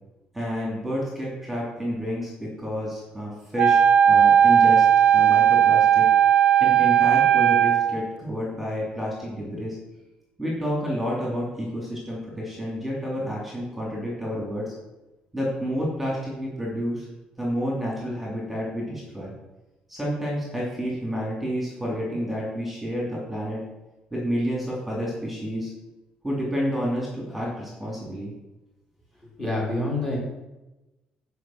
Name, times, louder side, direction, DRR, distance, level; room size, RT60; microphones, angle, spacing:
voice 1, 0.3-4.9 5.1-6.1 6.6-9.8 10.4-14.7 15.3-17.1 17.4-19.3 19.9-23.6 24.1-25.7 26.2-28.3, equal, 5° right, -4 dB, 2.9 m, -29 dB
Wind instrument woodwind instrument, 3.6-8.0, right 9 dB, 65° right, 0.6 m, -17 dB
voice 2, 29.4-30.2, left 2 dB, 20° left, -3 dB, 3.3 m, -26 dB
9.3 x 5.2 x 7.2 m, 1.0 s
cardioid pair, 140°, 3 cm